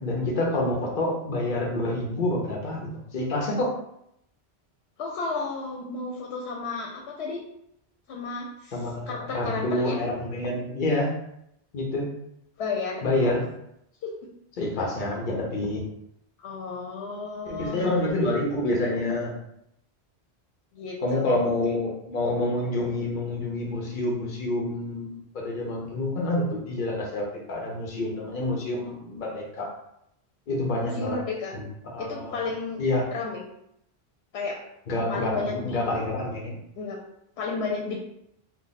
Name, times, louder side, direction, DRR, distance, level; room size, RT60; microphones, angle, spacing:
voice 1, 0.0-3.7 8.7-11.1 11.7-12.1 13.0-13.4 14.6-15.8 17.5-19.3 21.0-29.7 30.5-31.2 31.5-31.7 31.9-32.4 32.8-33.0 34.9-36.6, left 2 dB, 50° left, -1 dB, 1.0 m, -27 dB
voice 2, 5.0-7.4 8.1-10.0 12.6-13.4 14.0-14.1 16.4-18.1 20.7-21.3 30.8-31.5 32.0-32.8 33.1-33.4 34.3-34.6 35.1-35.8 36.8-37.0 37.4-38.0, left 4 dB, 90° left, 0 dB, 0.9 m, -32 dB
3.5 x 2.0 x 4.0 m, 0.76 s
omnidirectional pair, 1.1 m